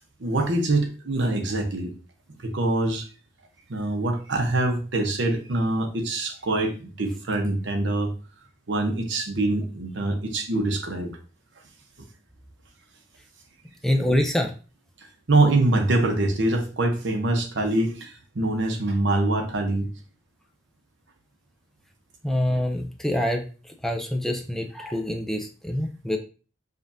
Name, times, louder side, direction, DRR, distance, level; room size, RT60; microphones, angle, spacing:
voice 1, 0.2-1.9 2.4-3.1 3.7-8.1 8.7-11.1 15.3-19.9, right 2 dB, 75° right, 4 dB, 0.8 m, -24 dB
voice 2, 13.8-14.5 22.2-23.4 23.8-26.2, left 1 dB, ahead, 3 dB, 0.4 m, -25 dB
5.0 x 2.4 x 2.6 m, 0.36 s
head